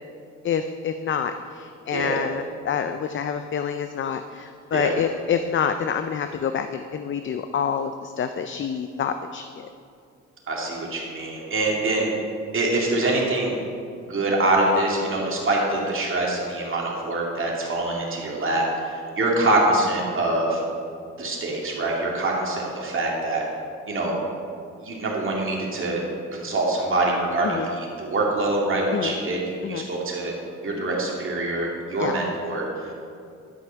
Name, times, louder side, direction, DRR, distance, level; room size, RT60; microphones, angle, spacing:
voice 1, 0.4-9.7 27.4-27.7 28.9-29.1 29.6-29.9 32.0-32.1, left 7 dB, 40° left, 8 dB, 0.5 m, -27 dB
voice 2, 10.5-12.1 12.5-13.5 14.0-20.6 21.2-23.4 23.9-24.1 24.8-26.0 26.3-30.3 30.6-32.7, right 2 dB, 45° right, -2 dB, 2.5 m, -24 dB
11.5 x 6.1 x 5.8 m, 2.4 s
cardioid pair, 90°, 30 cm